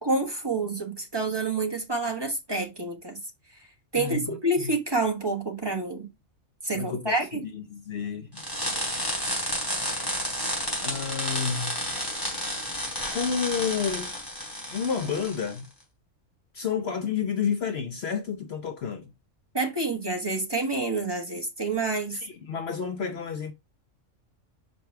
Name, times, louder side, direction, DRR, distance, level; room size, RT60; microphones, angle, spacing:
voice 1, 0.0-3.2 3.9-6.1 6.6-7.4 19.5-22.2, right 2 dB, 20° right, 1.4 m, -28 dB
voice 2, 3.9-4.7 6.7-7.2 7.5-8.4 10.8-11.9 12.6-14.1 14.7-15.7 16.5-19.1 22.1-23.5, left 6 dB, 60° left, 0.9 m, -30 dB
sound 1, 8.4-15.6, equal, 15° left, 3.3 m, -31 dB
6.1 x 5.3 x 3.4 m
omnidirectional pair, 1.3 m